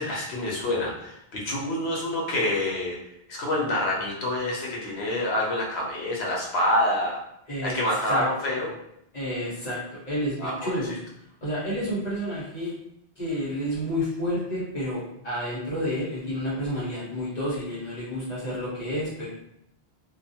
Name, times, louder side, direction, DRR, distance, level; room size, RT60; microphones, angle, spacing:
voice 1, 0.0-3.0 3.3-7.2 7.6-8.7 10.4-11.0, left 1 dB, 80° left, -2 dB, 1.0 m, -27 dB
voice 2, 7.5-8.3 8.5-8.6 9.1-9.8 10.0-10.3 10.6-11.0 11.4-12.7 13.2-19.3, equal, 45° left, -9 dB, 0.9 m, -30 dB
2.5 x 2.3 x 2.7 m, 0.77 s
omnidirectional pair, 1.1 m